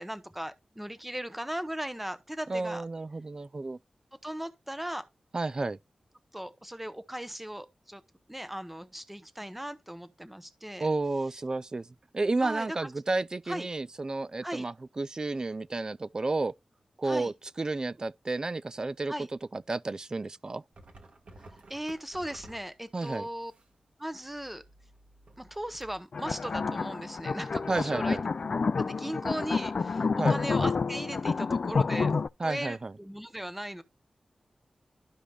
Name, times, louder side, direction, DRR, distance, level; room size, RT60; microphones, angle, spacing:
voice 1, 0.0-2.8 4.2-5.1 6.3-8.0 8.3-10.9 12.4-12.9 13.5-13.7 14.4-14.7 17.0-17.3 19.1-19.3 21.7-23.5 24.0-24.6 25.4-28.2 28.8-33.8, right 1 dB, 5° right, 0.8 m, -38 dB
voice 2, 2.5-3.8 5.3-5.8 10.8-11.9 12.1-16.5 17.0-19.1 19.5-20.6 22.9-23.3 27.7-28.2 30.2-30.4 32.4-32.9, right 3 dB, 35° right, 0.3 m, -31 dB
sound 1, 20.7-23.8 24.2-26.0, right 2 dB, 70° right, 1.5 m, -54 dB
sound 2, 26.1-32.3, left 4 dB, 55° left, 0.3 m, -29 dB
12.5 x 5.0 x 2.3 m
wide cardioid pair, 105°, 2 cm